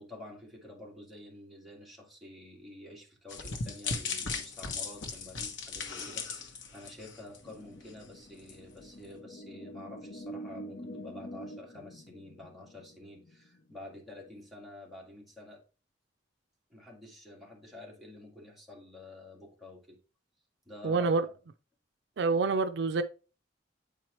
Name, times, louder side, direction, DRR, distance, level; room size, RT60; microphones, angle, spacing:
voice 1, 0.0-15.6 16.7-20.0 20.7-21.1, left 1 dB, ahead, 1.9 m, -49 dB
sound 1, 3.3-7.5 7.9-8.0 8.5-8.6, left 4 dB, 85° left, 1.0 m, -37 dB
sound 2, 7.4-14.3, equal, 50° left, 0.6 m, -46 dB
voice 2, 20.8-21.2 22.2-23.0, right 4 dB, 65° right, 0.4 m, -27 dB
8.4 x 4.5 x 3.0 m
head